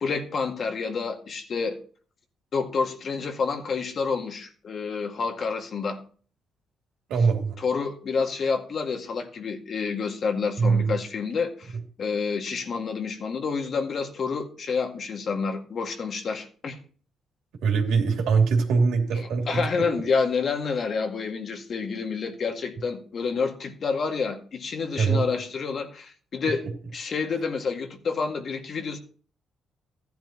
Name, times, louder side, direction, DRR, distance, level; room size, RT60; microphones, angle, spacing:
voice 1, 0.0-1.8 2.5-6.0 7.6-11.7 12.0-16.8 19.1-26.6 26.9-29.0, left 5 dB, 50° left, 4 dB, 2.0 m, -28 dB
voice 2, 7.1-7.6 10.6-11.0 17.6-19.6 25.0-25.3, right 5 dB, 85° right, 2 dB, 2.8 m, -22 dB
14.5 x 10.5 x 3.0 m, 0.42 s
cardioid pair, 90°, 0 cm